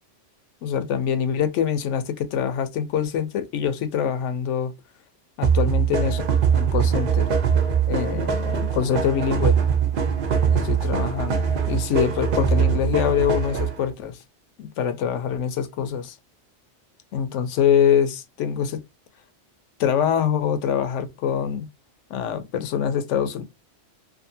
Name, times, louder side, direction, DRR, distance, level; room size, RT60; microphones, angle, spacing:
voice 1, 0.6-4.7 5.4-6.2 6.6-7.3 7.9-9.6 10.5-14.2 14.6-16.1 17.1-18.8 19.8-21.7 22.1-23.4, left 8 dB, 85° left, 0.9 m, -24 dB
sound 1, 5.4-13.9, right 7 dB, 55° right, 0.7 m, -22 dB
2.6 x 2.5 x 2.6 m
omnidirectional pair, 1.2 m